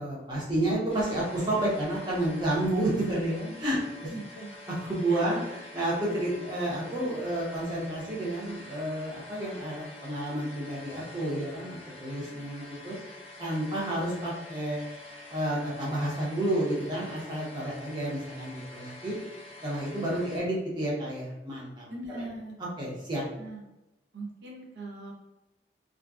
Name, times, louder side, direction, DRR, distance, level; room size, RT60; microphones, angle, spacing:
voice 1, 0.0-3.8 4.8-5.4 5.7-13.0 13.4-14.8 15.3-19.2 19.6-21.9 22.1-22.2 22.8-23.2, right 1 dB, 25° right, -6 dB, 0.7 m, -30 dB
sound 1, 0.9-20.4, left 2 dB, 35° left, 0.4 m, -47 dB
voice 2, 4.0-4.5 5.1-5.6 21.9-22.6 23.4-23.6 24.1-25.1, right 1 dB, 75° right, -2 dB, 0.6 m, -40 dB
2.5 x 2.1 x 2.3 m, 0.95 s
head